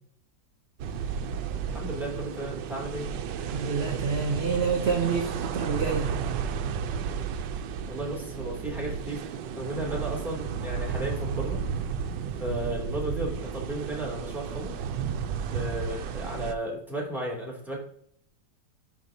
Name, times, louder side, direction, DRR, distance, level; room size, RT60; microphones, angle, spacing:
sound 1, 0.8-16.5, right 7 dB, 80° right, 1.3 m, -33 dB
voice 1, 1.7-3.1 7.9-11.6 12.4-14.8 15.5-17.9, right 1 dB, ahead, -3 dB, 2.6 m, -34 dB
voice 2, 3.4-6.2, right 5 dB, 50° right, 3 dB, 0.8 m, -28 dB
11.5 x 5.0 x 2.8 m, 0.64 s
omnidirectional pair, 2.0 m